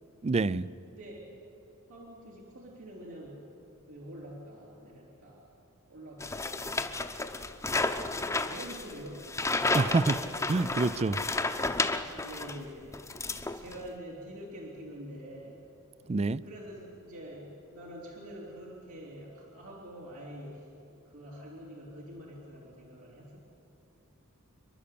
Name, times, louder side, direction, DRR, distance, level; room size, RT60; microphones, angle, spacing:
voice 1, 0.2-0.7 9.7-10.1 10.5-11.2 16.1-16.4, right 3 dB, 30° right, 19 dB, 0.4 m, -27 dB
voice 2, 0.9-1.3 1.9-3.4 3.9-5.5 5.9-7.3 8.3-9.3 9.6-9.9 12.2-13.0 13.6-15.6 16.4-20.7 21.1-23.4, equal, 85° right, -5 dB, 3.5 m, -46 dB
sound 1, 6.2-12.6 12.9-13.9, left 3 dB, 15° left, 0.8 m, -32 dB
28.0 x 11.5 x 8.6 m, 2.9 s
head